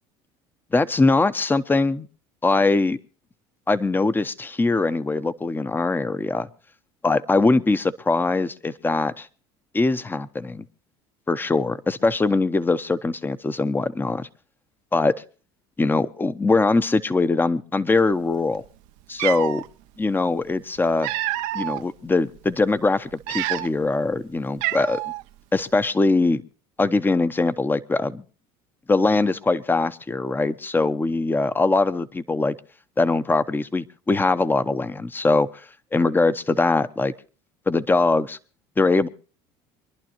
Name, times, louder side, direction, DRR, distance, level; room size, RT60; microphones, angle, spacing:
voice 1, 0.7-2.1 2.4-3.0 3.7-6.5 7.0-9.3 9.7-10.6 11.3-14.3 14.9-15.2 15.8-18.6 19.1-19.6 20.0-21.1 21.5-25.0 25.5-26.4 26.8-28.2 28.9-32.6 33.0-35.7 35.9-37.1 37.7-38.4 38.8-39.1, left 3 dB, 15° left, 0.9 m, -22 dB
Cat, 18.6-18.7 19.1-19.7 20.6-21.8 22.4-22.5 23.1-23.9 24.2-24.3 24.6-25.2, right 16 dB, 75° right, 0.7 m, -28 dB
25.0 x 11.5 x 2.9 m
supercardioid pair, 90°, 13 cm